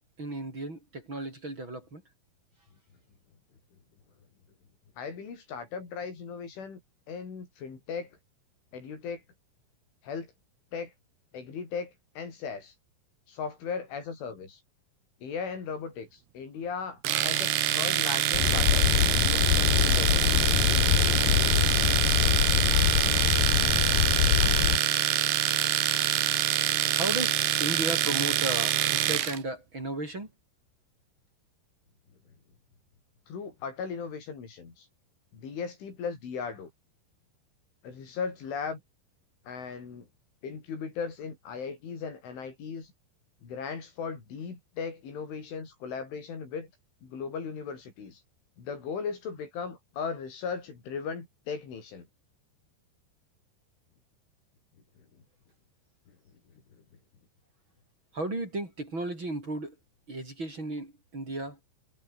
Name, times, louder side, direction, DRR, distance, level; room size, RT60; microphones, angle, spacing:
voice 1, 0.0-2.0 27.0-30.3 58.1-59.8 60.1-61.6, right 2 dB, 25° right, 6.4 m, -35 dB
voice 2, 5.0-6.8 7.1-8.2 8.7-9.2 10.0-10.3 10.7-10.9 11.3-12.7 13.3-14.6 15.2-18.9 19.1-20.3 33.3-34.9 35.3-36.7 37.8-38.8 39.5-40.1 40.4-42.9 43.4-46.7 47.0-48.2 48.6-52.1 55.0-55.1 56.7-56.8, left 5 dB, 80° left, 8.7 m, -37 dB
Domestic sounds home sounds, 17.0-29.4, right 12 dB, 65° right, 3.5 m, -26 dB
sound 1, 18.3-24.8, left 12 dB, 60° left, 2.6 m, -24 dB
omnidirectional pair, 5.4 m